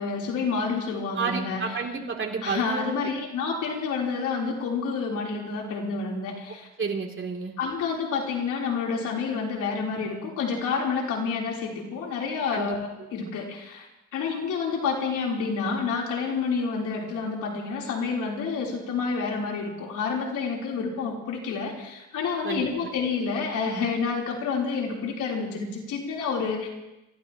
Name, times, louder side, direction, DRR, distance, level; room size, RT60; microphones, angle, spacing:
voice 1, 0.0-1.8 2.4-6.7 7.6-26.7, left 5 dB, 80° left, -2 dB, 3.9 m, -29 dB
voice 2, 1.2-2.9 6.8-7.5 12.5-12.7 22.4-22.7, right 5 dB, 40° right, 1 dB, 3.2 m, -30 dB
26.5 x 15.5 x 3.1 m, 0.97 s
cardioid pair, 90°, 30 cm